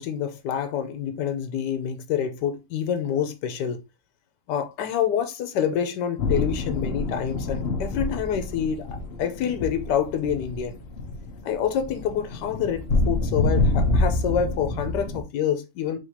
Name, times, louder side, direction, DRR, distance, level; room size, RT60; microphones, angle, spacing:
voice 1, 0.0-3.8 4.5-10.8 11.4-16.0, left 8 dB, 90° left, 1.3 m, -27 dB
sound 1, 6.2-15.2, left 2 dB, 55° left, 0.7 m, -27 dB
5.0 x 3.2 x 2.7 m
omnidirectional pair, 1.8 m